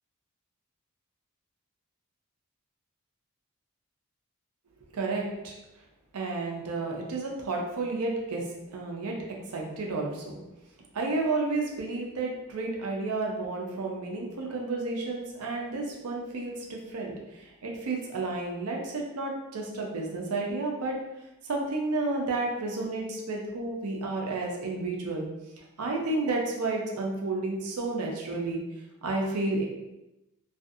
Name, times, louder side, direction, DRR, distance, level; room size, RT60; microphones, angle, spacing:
voice 1, 4.9-5.5 6.1-9.2 9.5-10.4 10.9-21.0 21.4-25.3 25.6-28.6 29.0-29.6, right 3 dB, 85° right, 0 dB, 0.5 m, -31 dB
2.6 x 2.4 x 2.4 m, 0.93 s
head